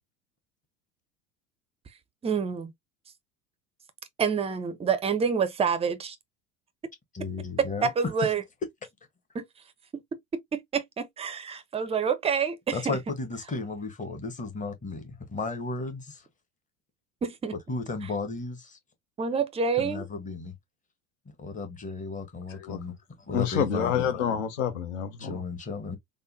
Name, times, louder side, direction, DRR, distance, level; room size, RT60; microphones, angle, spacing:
voice 1, 2.2-2.7 4.2-6.2 7.6-8.4 9.3-9.4 10.5-13.0 17.2-17.5 19.2-20.1, right 6 dB, 15° right, 0.5 m, -27 dB
voice 2, 7.1-7.9 8.2-8.3 12.7-16.3 17.7-18.8 19.8-20.5 21.4-24.1 25.2-26.0, left 3 dB, 20° left, 1.1 m, -34 dB
voice 3, 23.3-25.4, left 8 dB, 65° left, 1.0 m, -28 dB
3.6 x 2.2 x 2.6 m
figure-of-eight pair, 75°, 41 cm